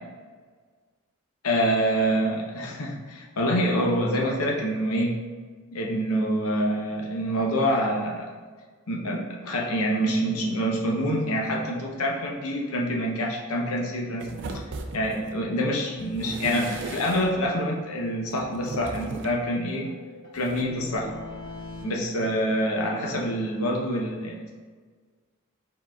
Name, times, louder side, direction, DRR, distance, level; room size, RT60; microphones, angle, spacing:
voice 1, 1.4-5.1 5.7-8.3 8.9-14.6 14.9-19.9 20.3-21.1 21.8-24.5, equal, 80° left, -1 dB, 0.7 m, -26 dB
sound 1, 14.2-15.4 16.0-17.5 18.3-19.4 20.4-20.6, right 3 dB, 55° right, 0.4 m, -37 dB
sound 2, 15.4-15.5 15.8-15.9 16.2-16.3 16.6-16.7 17.0-18.3 18.6-21.8, left 2 dB, 45° left, 1.2 m, -44 dB
4.8 x 4.0 x 2.3 m, 1.5 s
head